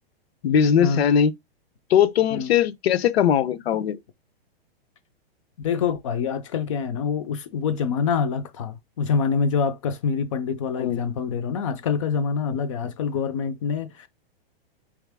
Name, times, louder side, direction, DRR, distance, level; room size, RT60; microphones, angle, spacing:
voice 1, 0.4-1.3 1.9-4.0 10.8-11.0, left 8 dB, 85° left, 0.6 m, -20 dB
voice 2, 5.6-14.1, left 6 dB, 35° left, 0.4 m, -26 dB
3.6 x 2.9 x 3.4 m
supercardioid pair, 160°, 30 cm